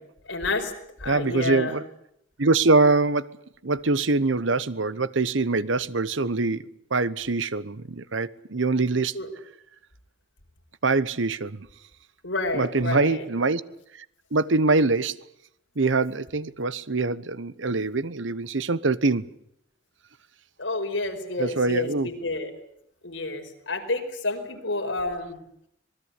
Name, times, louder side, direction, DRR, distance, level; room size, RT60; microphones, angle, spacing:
voice 1, 0.2-0.7 1.0-1.8 9.1-9.3 12.2-13.2 20.6-22.5 23.0-25.4, left 2 dB, 70° left, 5.1 m, -29 dB
voice 2, 1.1-1.8 2.4-3.3 3.6-6.6 6.9-9.1 10.8-11.7 12.5-13.6 13.9-14.0 14.3-15.2 15.8-19.3 21.4-22.1, right 3 dB, 75° right, 1.0 m, -24 dB
26.5 x 20.0 x 8.3 m
head